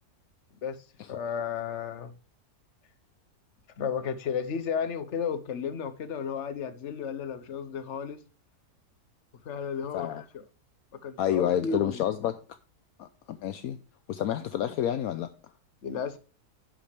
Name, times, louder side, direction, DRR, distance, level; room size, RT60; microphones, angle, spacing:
voice 1, 1.1-2.1 3.8-8.2 9.4-10.1 10.3-10.4 11.0-12.0 15.8-16.2, left 6 dB, 55° left, 1.2 m, -33 dB
voice 2, 9.9-10.2 11.2-12.3 13.0-13.8 14.1-15.3, left 10 dB, 75° left, 1.1 m, -29 dB
10.5 x 7.6 x 3.3 m
omnidirectional pair, 1.6 m